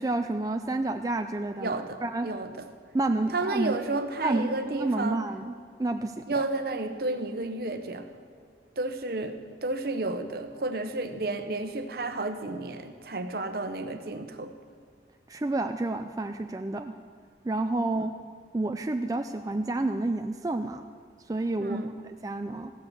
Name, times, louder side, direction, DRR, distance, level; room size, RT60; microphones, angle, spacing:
voice 1, 0.0-2.3 2.9-3.8 4.2-4.5 4.7-5.5 5.8-6.1 15.3-16.9 17.4-18.1 18.5-20.9 21.3-21.8 22.2-22.7, right 2 dB, 20° right, 6 dB, 0.4 m, -29 dB
voice 2, 1.6-2.7 3.3-5.2 6.3-8.1 8.8-14.5 17.9-18.0 21.6-21.9, right 2 dB, 60° right, 8 dB, 0.9 m, -32 dB
15.0 x 8.1 x 7.1 m, 2.1 s
head